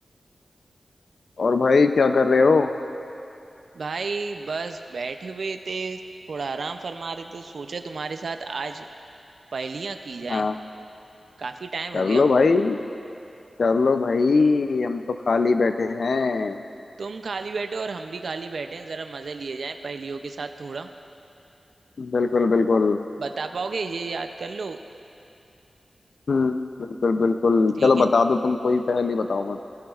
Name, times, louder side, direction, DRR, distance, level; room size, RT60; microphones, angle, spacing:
voice 1, 1.4-2.7 10.3-10.5 11.9-12.8 13.6-16.6 22.0-23.0 26.3-29.6, left 4 dB, 70° left, 8 dB, 0.4 m, -20 dB
voice 2, 3.7-6.0 6.3-8.9 9.5-10.5 11.4-12.2 17.0-20.9 23.2-24.8 27.8-28.1, right 4 dB, 75° right, 7 dB, 0.4 m, -32 dB
18.0 x 13.5 x 2.4 m, 2.7 s
wide cardioid pair, 75°, 0 cm